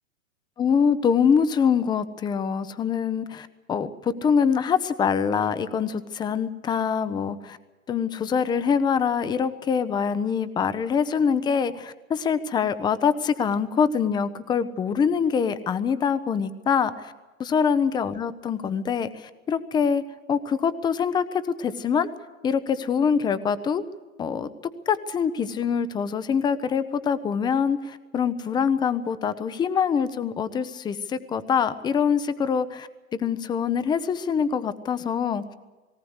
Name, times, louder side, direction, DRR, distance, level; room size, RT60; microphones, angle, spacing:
voice 1, 0.6-7.6 7.9-17.1 17.4-20.0 20.3-22.1 22.4-23.8 24.2-35.4, left 6 dB, 10° left, 14 dB, 0.7 m, -24 dB
18.5 x 18.5 x 8.0 m, 1.2 s
hypercardioid pair, 125°, 42 cm